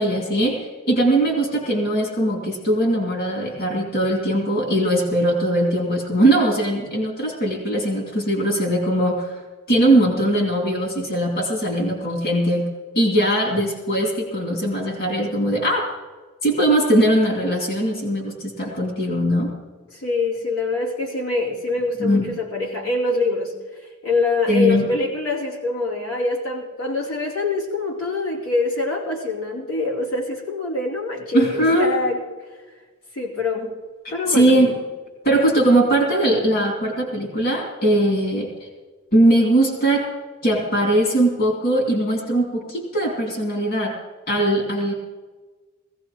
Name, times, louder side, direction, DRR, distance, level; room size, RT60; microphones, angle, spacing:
voice 1, 0.0-9.4 9.7-12.7 12.9-15.9 16.4-19.5 22.0-22.3 24.5-24.9 31.3-32.0 34.0-34.8 35.2-38.5 39.1-40.1 40.4-44.0 44.3-44.9, right 1 dB, 45° left, -1 dB, 2.7 m, -20 dB
voice 2, 19.9-32.2 33.1-33.8 34.1-34.6, left 3 dB, 75° left, -4 dB, 2.8 m, -24 dB
19.5 x 16.5 x 3.1 m, 1.4 s
head